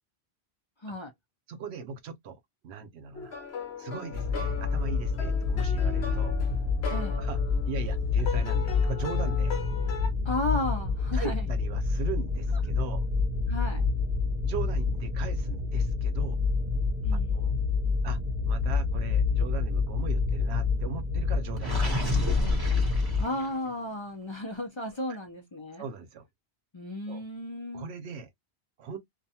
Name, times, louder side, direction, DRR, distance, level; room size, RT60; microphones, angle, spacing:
voice 1, 1.5-3.3 3.8-6.4 7.2-7.4 7.7-9.6 11.1-13.1 14.4-16.4 17.1-17.5 18.0-18.2 18.4-22.3 25.1-25.2 25.8-26.3 27.1-27.2 27.7-28.3 28.8-29.0, right 5 dB, 85° right, 0.9 m, -39 dB
sound 1, 3.1-10.1, left 6 dB, 75° left, 1.0 m, -39 dB
sound 2, 4.1-23.2, left 4 dB, 45° right, 0.9 m, -28 dB
voice 2, 6.9-7.2 10.2-11.5 13.5-13.8 17.0-17.4 23.2-25.8 26.7-27.9, left 1 dB, 35° left, 0.6 m, -34 dB
Gurgling, 21.6-23.7, equal, 20° right, 1.0 m, -32 dB
2.5 x 2.2 x 2.7 m
omnidirectional pair, 1.1 m